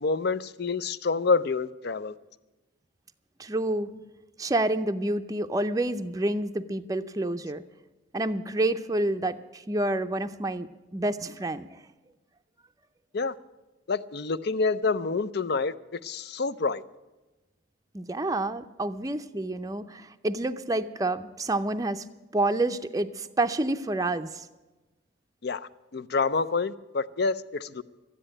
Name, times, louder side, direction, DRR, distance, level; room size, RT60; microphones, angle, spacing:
voice 1, 0.0-2.1 13.1-13.3 13.9-16.8 25.4-27.8, left 4 dB, 60° left, 0.5 m, -28 dB
voice 2, 3.4-3.9 4.4-7.6 8.1-11.8 17.9-22.0 22.3-24.5, right 2 dB, 20° right, 0.5 m, -28 dB
13.0 x 10.0 x 8.8 m
head